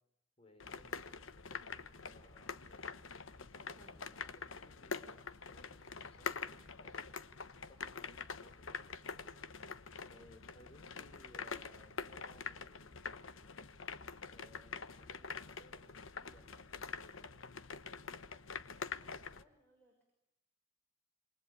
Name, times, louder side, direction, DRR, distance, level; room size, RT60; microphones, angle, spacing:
voice 1, 0.4-2.7 3.4-7.1 7.5-9.3 10.1-13.1 14.3-17.4, equal, 30° left, 6 dB, 5.3 m, -63 dB
sound 1, 0.6-19.4, left 5 dB, 75° left, 1.1 m, -46 dB
voice 2, 19.4-20.0, equal, 10° left, 1 dB, 6.1 m, -70 dB
28.0 x 23.5 x 8.7 m, 0.89 s
head